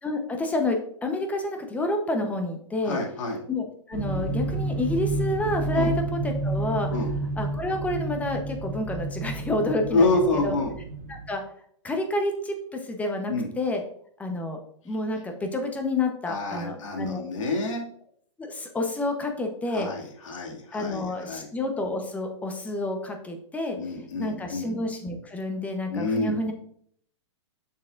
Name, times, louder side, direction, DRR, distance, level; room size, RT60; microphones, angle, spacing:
voice 1, 0.0-3.0 3.5-6.9 7.4-10.5 11.1-11.4 11.8-13.8 14.2-14.6 14.8-17.2 18.4-19.9 20.7-23.8 24.2-26.5, left 2 dB, 10° left, 4 dB, 0.8 m, -29 dB
voice 2, 2.8-3.4 5.7-5.9 6.9-7.1 9.9-10.7 13.3-13.5 16.3-17.8 19.7-21.5 23.8-24.7 25.9-26.3, left 2 dB, 75° left, 0 dB, 2.2 m, -27 dB
sound 1, 3.9-11.3, right 2 dB, 45° right, 1.2 m, -30 dB
7.0 x 6.5 x 2.5 m, 0.65 s
hypercardioid pair, 145°, 16 cm